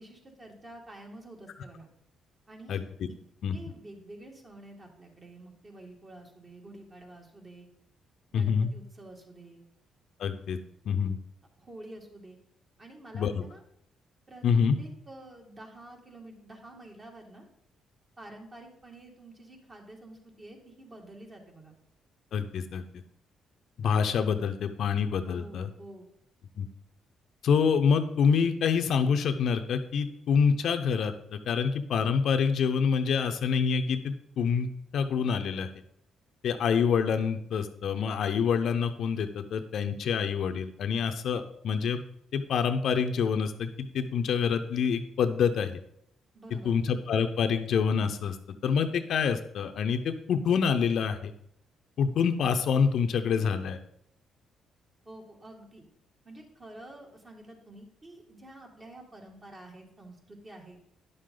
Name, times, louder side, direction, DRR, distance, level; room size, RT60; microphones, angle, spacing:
voice 1, 0.0-1.9 2.5-3.2 3.5-7.7 8.3-9.6 11.6-12.4 12.8-13.6 14.3-14.5 14.8-17.5 18.2-21.7 25.2-26.1 46.3-46.7 55.0-55.8 56.2-60.8, right 1 dB, 30° right, 1 dB, 2.2 m, -48 dB
voice 2, 8.3-8.7 10.2-10.6 10.9-11.2 13.1-13.4 14.4-14.8 22.3-22.8 23.8-25.7 26.6-26.7 27.4-35.7 36.4-42.0 42.3-45.8 46.5-48.4 48.6-51.3 52.0-53.8, left 6 dB, 70° left, 7 dB, 0.7 m, -26 dB
10.0 x 6.6 x 3.8 m, 0.73 s
cardioid pair, 90°, 0 cm